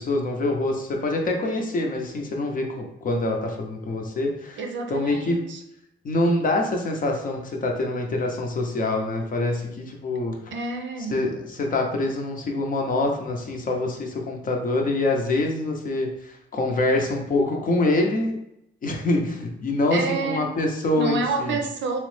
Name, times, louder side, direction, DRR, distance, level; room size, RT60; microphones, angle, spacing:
voice 1, 0.0-4.6 4.9-5.4 6.0-10.5 11.1-11.3 11.6-18.4 18.8-21.6, left 2 dB, 45° left, 2 dB, 0.6 m, -25 dB
voice 2, 4.6-5.6 10.5-11.3 19.9-20.5 20.9-22.0, right 3 dB, 70° right, 4 dB, 0.6 m, -28 dB
3.1 x 2.0 x 3.1 m, 0.80 s
cardioid pair, 90°, 20 cm